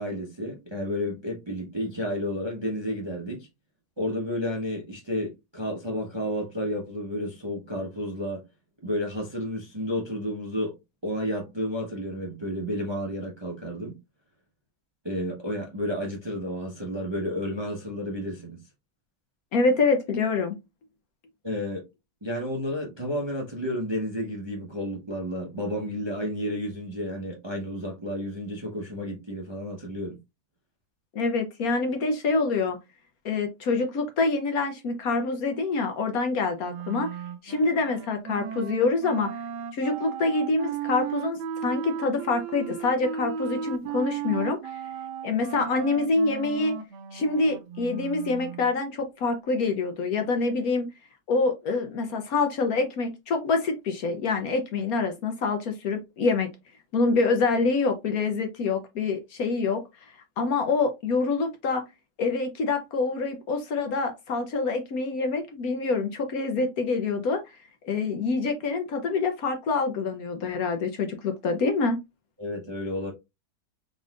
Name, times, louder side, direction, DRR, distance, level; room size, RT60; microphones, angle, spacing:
voice 1, 0.0-3.5 4.0-8.4 8.8-10.7 11.0-14.0 15.0-18.6 21.4-21.8 22.2-30.2 72.4-73.1, equal, 20° right, 0.7 m, -31 dB
voice 2, 19.5-20.6 31.1-32.8 33.2-37.1 37.4-39.3 39.7-44.8 45.2-46.7 47.1-50.9 51.3-56.5 56.9-59.8 60.4-61.8 62.2-67.4 67.8-72.0, left 3 dB, 60° left, 1.1 m, -26 dB
Wind instrument woodwind instrument, 36.7-48.7, right 8 dB, 75° right, 1.2 m, -35 dB
4.0 x 3.7 x 2.4 m
omnidirectional pair, 1.9 m